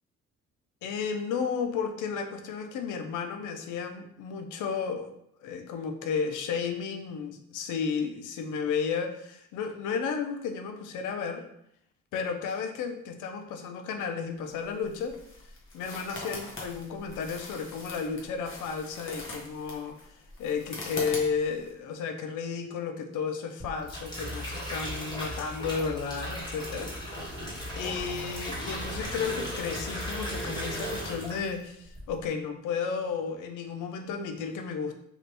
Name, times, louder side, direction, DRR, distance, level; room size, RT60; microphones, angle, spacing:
voice 1, 0.8-5.2 5.4-11.5 12.1-15.2 15.7-26.9 27.8-34.9, left 6 dB, 85° left, 6 dB, 0.5 m, -33 dB
sound 1, 14.5-21.7, left 2 dB, 40° left, 0.9 m, -42 dB
sound 2, 23.6-31.6 31.9-32.3, equal, 15° left, 1.3 m, -36 dB
2.9 x 2.5 x 3.2 m, 0.73 s
cardioid pair, 90°, 30 cm